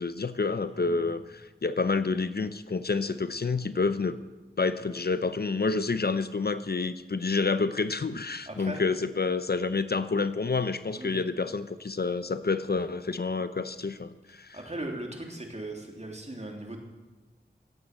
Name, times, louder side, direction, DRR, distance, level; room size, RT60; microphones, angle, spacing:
voice 1, 0.0-4.2 4.6-14.6, left 4 dB, 55° left, 12 dB, 0.7 m, -28 dB
voice 2, 0.7-1.0 8.5-8.8 10.9-11.3 14.5-16.8, right 1 dB, 35° right, 1 dB, 3.2 m, -38 dB
16.0 x 8.8 x 7.8 m, 1.2 s
wide cardioid pair, 45°, 19 cm